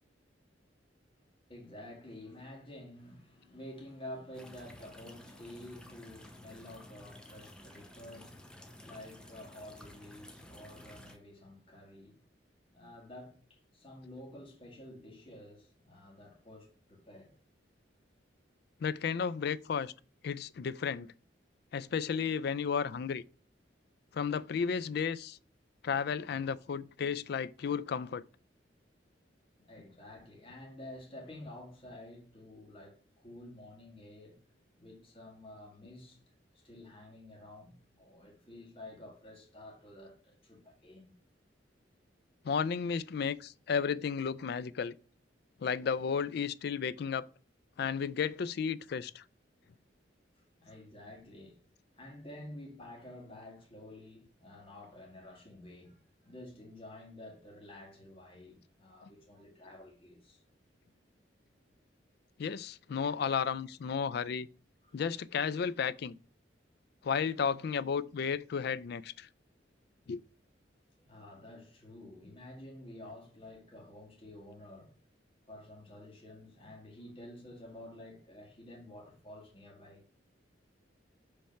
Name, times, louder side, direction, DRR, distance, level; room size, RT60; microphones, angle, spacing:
voice 1, 1.5-8.4 8.8-12.2 12.7-17.4 29.6-34.4 34.8-36.2 36.5-41.0 50.6-51.6 51.9-60.4 64.8-65.0 71.0-74.9 75.5-80.0, left 1 dB, 30° left, 1.8 m, -50 dB
sound 1, 4.3-11.2, left 1 dB, 5° left, 0.7 m, -53 dB
voice 2, 18.8-19.9 20.2-21.1 21.7-23.2 24.1-25.4 25.8-28.2 42.4-45.0 45.6-47.3 47.8-49.2 59.0-59.1 62.4-64.5 64.9-66.2 67.0-69.3 70.1-70.2, left 6 dB, 60° left, 0.4 m, -33 dB
5.4 x 3.3 x 5.6 m
head